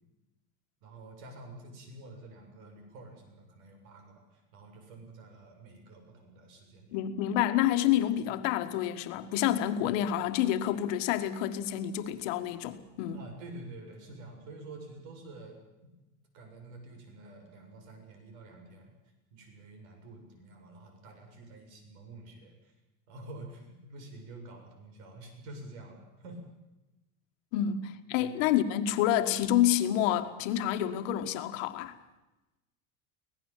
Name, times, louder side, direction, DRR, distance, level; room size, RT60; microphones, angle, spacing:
voice 1, 0.8-7.0 13.1-15.6 16.3-18.9 19.3-22.7 23.1-26.4 28.2-28.3, right 2 dB, 70° right, 7.4 m, -48 dB
voice 2, 6.9-13.2 27.5-31.9, left 11 dB, 60° left, 1.8 m, -28 dB
25.0 x 18.5 x 7.5 m
cardioid pair, 175°, 43 cm